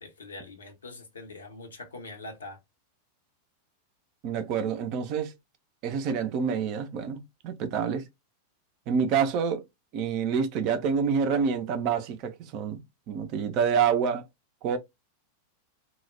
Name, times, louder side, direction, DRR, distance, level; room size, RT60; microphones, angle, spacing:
voice 1, 0.0-2.6, left 2 dB, 70° left, 0.7 m, -43 dB
voice 2, 4.2-5.3 5.8-8.1 8.9-9.7 9.9-12.8 13.1-14.3 14.6-14.8, right 6 dB, 40° right, 0.4 m, -27 dB
2.2 x 2.0 x 3.0 m
figure-of-eight pair, 90°, 0 cm